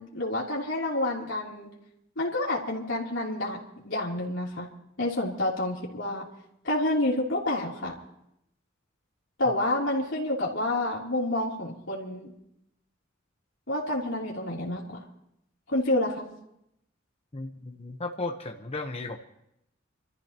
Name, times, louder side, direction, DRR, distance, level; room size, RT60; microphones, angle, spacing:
voice 1, 0.0-1.7 2.2-4.7 5.0-6.3 6.6-8.0 9.4-12.3 13.7-15.0 15.7-16.3, left 1 dB, 70° left, -5 dB, 3.3 m, -29 dB
voice 2, 17.3-19.2, left 2 dB, 30° left, 3 dB, 1.0 m, -35 dB
28.0 x 14.0 x 3.0 m, 0.79 s
head